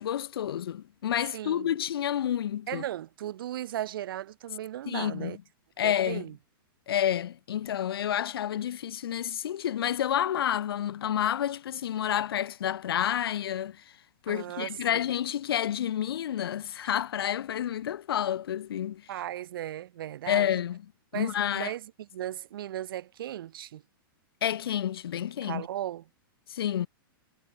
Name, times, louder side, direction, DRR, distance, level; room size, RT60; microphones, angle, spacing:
voice 1, 0.0-2.8 4.9-5.3 5.8-6.2 6.9-13.8 14.2-19.0 20.3-20.8 21.1-21.7 24.4-25.6 26.5-26.9, left 10 dB, 90° left, 0.6 m, -29 dB
voice 2, 1.3-1.8 2.7-5.4 5.8-6.4 14.3-15.1 19.1-20.6 21.1-23.8 25.4-26.0, right 12 dB, 70° right, 1.1 m, -36 dB
hypercardioid pair, 150°, 12 cm